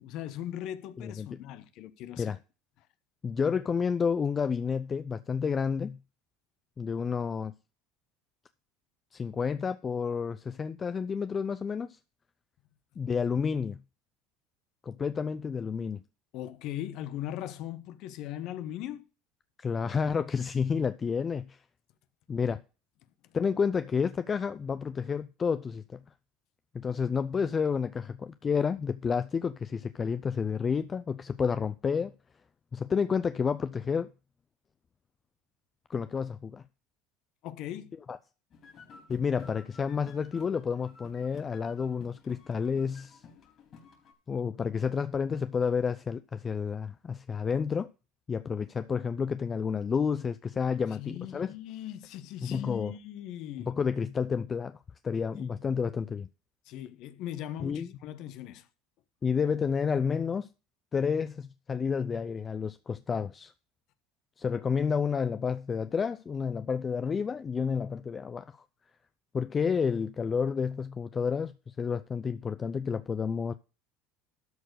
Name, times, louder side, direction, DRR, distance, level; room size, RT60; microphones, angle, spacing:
voice 1, 0.0-2.3 16.3-19.0 37.4-38.0 51.0-53.7 55.4-55.6 56.7-58.7, left 12 dB, 60° left, 1.0 m, -39 dB
voice 2, 1.0-1.4 2.2-2.4 3.2-6.0 6.8-7.5 9.1-12.0 13.0-13.8 14.8-16.0 19.6-21.6 22.3-22.6 23.3-26.0 26.7-32.1 32.7-34.1 35.9-36.6 38.1-38.2 39.1-43.2 44.3-47.9 48.3-51.5 52.4-52.9 53.6-54.8 55.0-56.3 57.6-57.9 59.2-60.5 60.9-63.5 64.4-68.6 69.3-73.5, left 6 dB, 30° left, 0.5 m, -30 dB
sound 1, 38.5-44.1, left 5 dB, 45° left, 4.3 m, -53 dB
12.5 x 4.5 x 6.5 m
supercardioid pair, 90°, 0 cm